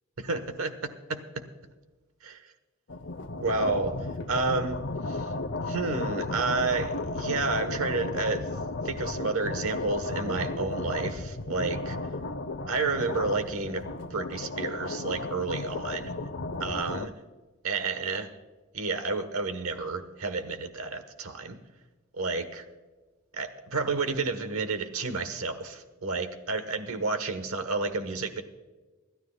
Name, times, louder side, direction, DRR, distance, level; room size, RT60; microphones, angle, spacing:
voice 1, 0.2-0.7 1.1-1.2 2.2-2.3 3.4-4.0 4.3-4.8 5.1-5.3 5.7-8.4 8.8-12.0 12.7-13.8 14.1-16.1 16.6-17.1 17.6-18.3 18.7-21.6 22.1-22.6 23.3-28.4, right 3 dB, 80° right, 9 dB, 1.2 m, -30 dB
sound 1, 2.9-17.1, left 2 dB, 60° left, 0.7 m, -34 dB
26.0 x 12.0 x 2.3 m, 1.2 s
head